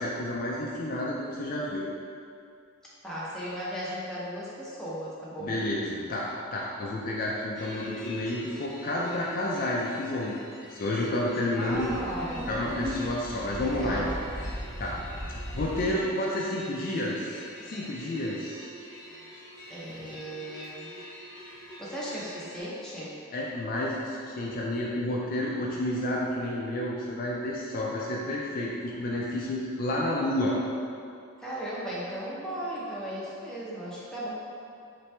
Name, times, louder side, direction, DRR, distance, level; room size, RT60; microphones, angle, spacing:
voice 1, 0.0-1.9 5.4-10.3 10.6-11.9 12.5-14.0 14.8-15.0 15.5-18.7 23.3-30.6, left 1 dB, 45° left, -4 dB, 0.3 m, -30 dB
voice 2, 3.0-5.6 11.5-12.6 13.6-14.2 19.7-21.0 21.8-23.2 31.4-34.3, right 1 dB, 5° left, -8 dB, 0.6 m, -36 dB
sound 1, 7.5-22.6, equal, 25° right, 1.3 m, -46 dB
Mooing Cows Sad Upset, 11.7-16.0, equal, 75° right, 0.9 m, -37 dB
3.3 x 2.9 x 3.2 m, 2.4 s
head